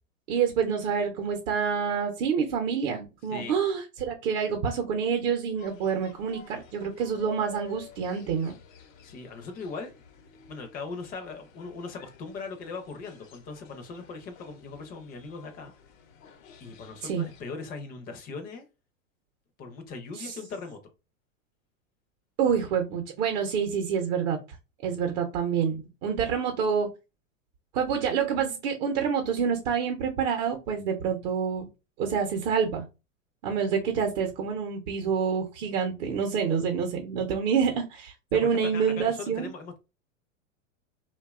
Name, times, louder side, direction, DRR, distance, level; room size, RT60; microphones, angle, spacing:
voice 1, 0.3-8.6 17.0-17.3 20.1-20.3 22.4-24.4 24.8-26.9 27.7-31.7 32.0-32.9 33.4-39.5, right 6 dB, 55° right, 0.7 m, -27 dB
sound 1, 5.6-17.4, left 8 dB, 75° left, 0.7 m, -52 dB
voice 2, 9.0-9.9 10.5-15.7 16.6-18.6 19.6-20.8 38.4-39.8, left 4 dB, 25° left, 0.4 m, -39 dB
2.7 x 2.2 x 2.3 m
hypercardioid pair, 115°, 39 cm